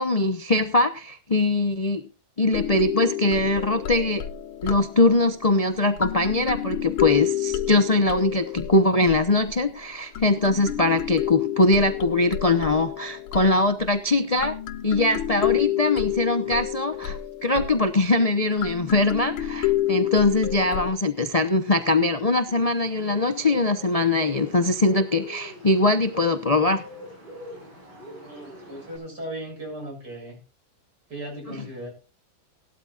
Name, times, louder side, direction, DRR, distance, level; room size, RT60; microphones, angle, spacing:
voice 1, 0.0-2.0 2.4-4.2 4.6-14.6 14.8-26.8, left 2 dB, 60° left, 8 dB, 0.3 m, -22 dB
sound 1, 2.5-5.5 6.0-9.7 10.1-13.9 14.4-18.3 18.6-20.9, left 12 dB, 85° left, 1.7 m, -29 dB
Bird, 22.5-29.0, equal, 75° right, 6.4 m, -43 dB
voice 2, 28.2-30.4 31.1-31.9, right 1 dB, 50° right, 0 dB, 7.8 m, -37 dB
18.0 x 12.5 x 2.4 m, 0.30 s
omnidirectional pair, 2.2 m